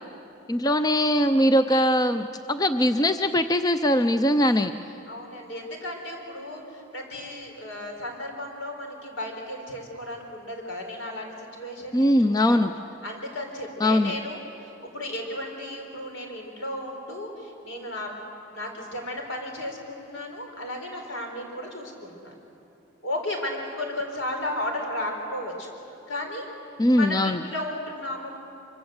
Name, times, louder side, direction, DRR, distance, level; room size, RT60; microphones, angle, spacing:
voice 1, 0.5-4.7 11.9-12.7 13.8-14.2 26.8-27.4, left 1 dB, 20° left, 9 dB, 0.5 m, -21 dB
voice 2, 5.1-12.6 13.0-18.1 18.5-22.3 23.0-25.7 26.1-26.5 26.9-28.4, left 1 dB, 75° left, 2 dB, 4.3 m, -34 dB
25.0 x 24.5 x 8.0 m, 2.7 s
head